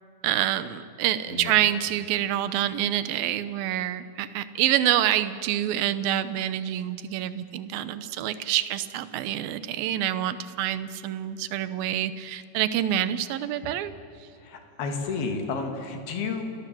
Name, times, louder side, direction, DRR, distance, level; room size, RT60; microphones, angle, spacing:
voice 1, 0.2-13.9, right 12 dB, 70° right, 13 dB, 2.4 m, -27 dB
voice 2, 1.3-1.6 14.4-16.4, left 4 dB, 65° left, 4 dB, 4.3 m, -31 dB
29.5 x 18.5 x 7.8 m, 2.6 s
omnidirectional pair, 4.9 m